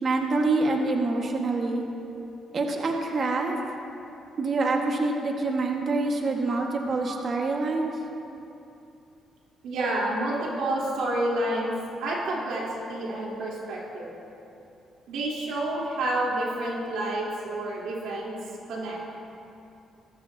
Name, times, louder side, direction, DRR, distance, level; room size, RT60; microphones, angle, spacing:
voice 1, 0.0-1.8 2.5-3.6 4.4-7.9, right 3 dB, 45° right, 1 dB, 1.7 m, -26 dB
voice 2, 9.6-11.7 12.0-14.1 15.1-18.4 18.7-19.0, right 1 dB, 85° right, -5 dB, 3.7 m, -29 dB
20.5 x 14.0 x 2.9 m, 2.7 s
cardioid pair, 90°, 0 cm